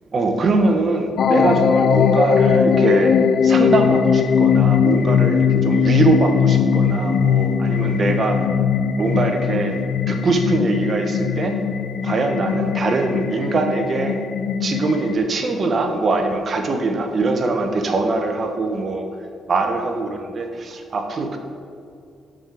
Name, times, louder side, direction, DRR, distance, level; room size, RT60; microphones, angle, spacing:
voice 1, 0.1-3.1 3.4-8.4 9.0-9.8 10.1-11.6 12.0-14.2 14.6-19.1 19.5-21.4, right 3 dB, 45° right, 5 dB, 1.2 m, -22 dB
sound 1, 1.2-15.2, left 7 dB, 60° left, 0.4 m, -19 dB
6.6 x 6.4 x 7.5 m, 2.5 s
cardioid pair, 90°, 0 cm